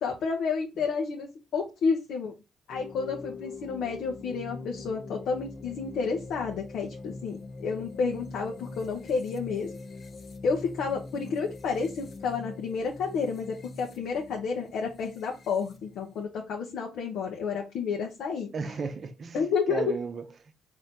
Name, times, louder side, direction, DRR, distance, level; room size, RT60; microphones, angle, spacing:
voice 1, 0.0-2.3 2.7-9.7 10.4-18.5 19.3-19.9, left 5 dB, 75° left, 0.8 m, -30 dB
sound 1, 2.7-16.2, left 3 dB, 45° left, 0.6 m, -43 dB
voice 2, 18.5-20.5, right 5 dB, 45° right, 0.6 m, -35 dB
4.0 x 2.7 x 3.5 m
cardioid pair, 90°, 0 cm